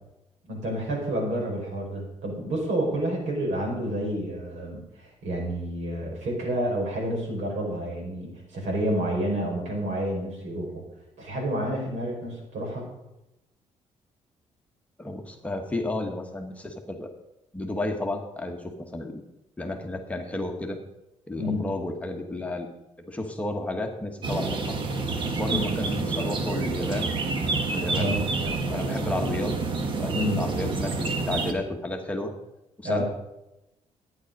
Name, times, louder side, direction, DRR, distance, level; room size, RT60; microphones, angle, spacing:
voice 1, 0.4-10.8 11.2-12.9 21.4-21.6 25.5-25.6 27.9-28.2 30.1-30.4 32.8-33.1, right 1 dB, 85° right, -1 dB, 5.0 m, -29 dB
voice 2, 15.0-17.1 17.5-19.2 19.6-20.8 21.3-22.7 23.0-24.7 25.3-27.1 27.7-29.5 30.0-32.3 32.8-33.1, left 2 dB, 10° left, 3 dB, 1.1 m, -32 dB
sound 1, 24.2-31.5, right 3 dB, 45° right, 1.2 m, -28 dB
11.5 x 9.5 x 5.2 m, 0.92 s
cardioid pair, 165°, 12 cm